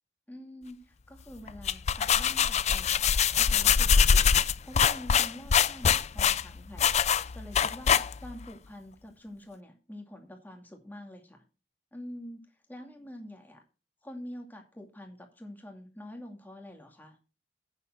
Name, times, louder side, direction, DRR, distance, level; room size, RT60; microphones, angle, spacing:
voice 1, 0.3-6.9 7.3-11.4 11.9-12.4 12.7-13.6 14.0-17.2, left 1 dB, 10° left, 3 dB, 2.3 m, -46 dB
sound 1, 1.5-8.4, left 7 dB, 35° left, 0.4 m, -24 dB
9.2 x 6.9 x 6.4 m, 0.33 s
head